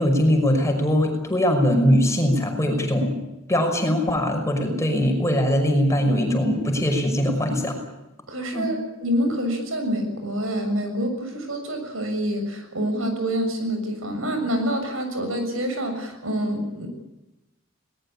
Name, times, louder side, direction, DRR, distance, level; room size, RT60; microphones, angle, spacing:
voice 1, 0.0-3.1 3.5-7.8 8.5-8.7, equal, 15° left, 3 dB, 5.9 m, -21 dB
voice 2, 8.3-16.9, equal, 80° right, 6 dB, 6.9 m, -27 dB
22.0 x 20.0 x 8.7 m, 0.93 s
head